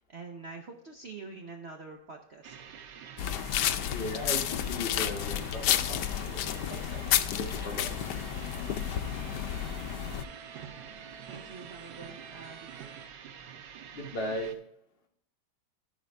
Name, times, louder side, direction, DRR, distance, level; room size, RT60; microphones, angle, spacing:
voice 1, 0.1-2.6 11.3-13.0, right 4 dB, 50° right, 2 dB, 0.9 m, -46 dB
sound 1, 2.4-14.6, right 8 dB, 85° right, 1.5 m, -48 dB
sound 2, 3.2-10.2, left 10 dB, 75° left, 1.2 m, -31 dB
voice 2, 3.9-7.0 7.4-7.9 13.9-14.5, left 1 dB, 40° left, 0 dB, 1.0 m, -37 dB
sound 3, 7.9-13.1, right 6 dB, 70° right, 1.2 m, -50 dB
14.0 x 5.0 x 3.4 m, 0.75 s
omnidirectional pair, 1.8 m